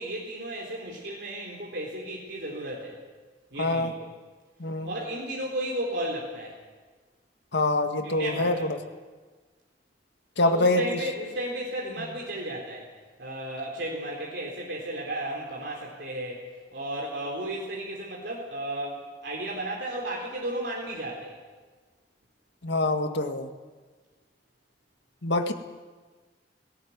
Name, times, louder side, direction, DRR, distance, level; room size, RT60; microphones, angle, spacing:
voice 1, 0.0-3.0 3.5-4.1 4.8-6.6 8.0-8.7 10.4-12.9 13.2-21.4, right 1 dB, 70° right, -2 dB, 3.9 m, -34 dB
voice 2, 3.6-3.9 4.6-5.0 7.5-8.8 10.4-10.8 22.6-23.5 25.2-25.5, left 2 dB, 85° left, 6 dB, 1.8 m, -25 dB
18.0 x 18.0 x 9.6 m, 1.4 s
head